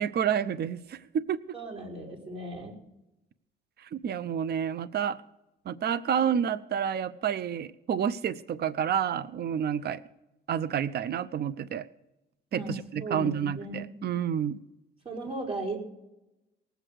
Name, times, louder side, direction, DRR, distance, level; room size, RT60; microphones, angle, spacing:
voice 1, 0.0-1.4 3.8-5.2 5.7-10.0 10.5-11.9 12.5-14.6, right 8 dB, 55° right, 16 dB, 0.7 m, -29 dB
voice 2, 1.5-2.8 12.5-13.9 15.0-15.8, right 2 dB, 30° right, 0 dB, 4.6 m, -36 dB
19.0 x 8.0 x 6.5 m, 0.91 s
cardioid pair, 90°, 20 cm